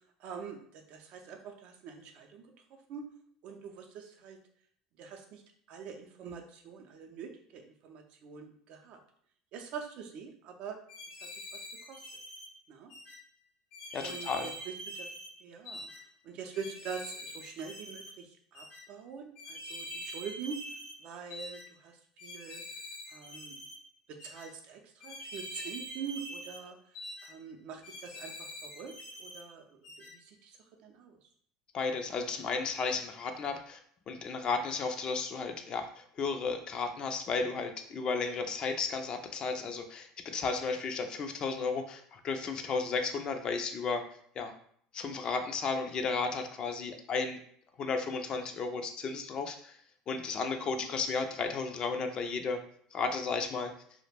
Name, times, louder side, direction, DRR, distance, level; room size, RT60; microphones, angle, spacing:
voice 1, 0.2-2.5 2.9-3.1 3.4-4.4 5.0-5.4 5.7-9.0 9.5-10.8 11.2-11.6 11.9-12.0 12.7-12.9 14.0-15.1 15.4-15.9 16.2-20.7 21.0-22.6 23.1-23.6 24.1-26.8 27.2-31.2, right 6 dB, 60° right, 3 dB, 0.5 m, -44 dB
sound 1, 10.9-12.5 12.9-13.2 13.7-15.3 15.7-16.0 16.5-18.1 18.5-18.8 19.4-21.0 21.3-21.6 22.2-23.8 24.2-24.5 25.0-26.6 26.9-27.3 27.8-29.4 29.8-30.1, equal, 70° left, 0.8 m, -44 dB
voice 2, 13.9-14.5 31.7-33.8 34.1-44.0 44.4-44.5 44.9-47.4 47.8-49.7 50.1-52.6 52.9-53.7, left 4 dB, 40° left, 6 dB, 0.3 m, -33 dB
2.3 x 2.0 x 3.3 m, 0.63 s
supercardioid pair, 115°, 2 cm